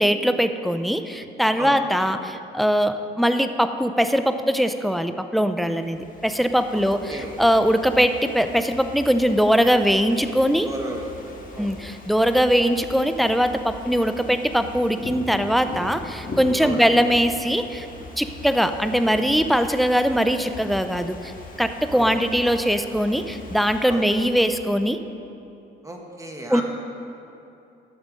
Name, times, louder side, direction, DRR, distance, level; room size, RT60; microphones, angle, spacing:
voice 1, 0.0-10.7 11.6-17.9 18.2-21.3 21.6-25.0 26.5-26.6, equal, ahead, 9 dB, 0.5 m, -21 dB
Ocean / Fireworks, 5.6-24.9, left 2 dB, 45° left, 1.7 m, -40 dB
voice 2, 6.7-7.3 10.6-11.7 16.6-16.9 21.9-22.2 23.9-24.1 25.8-26.6, right 1 dB, 15° right, 1 dB, 1.6 m, -34 dB
12.5 x 6.8 x 5.2 m, 2.8 s
cardioid pair, 90°, 20 cm